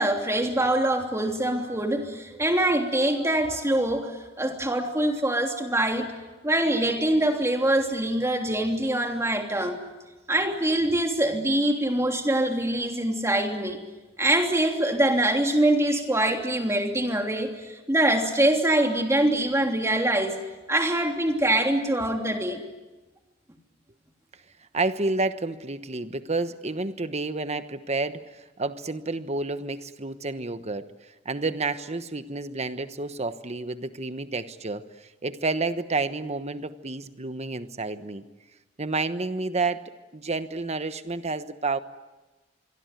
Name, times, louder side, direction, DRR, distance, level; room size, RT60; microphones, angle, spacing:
voice 1, 0.0-6.1 6.4-9.8 10.3-13.8 14.2-20.4 20.7-22.6, right 1 dB, 15° right, 3 dB, 3.1 m, -24 dB
voice 2, 24.7-30.9 31.2-38.2 38.8-41.8, right 3 dB, 35° right, 11 dB, 1.1 m, -30 dB
26.0 x 23.0 x 9.3 m, 1.2 s
head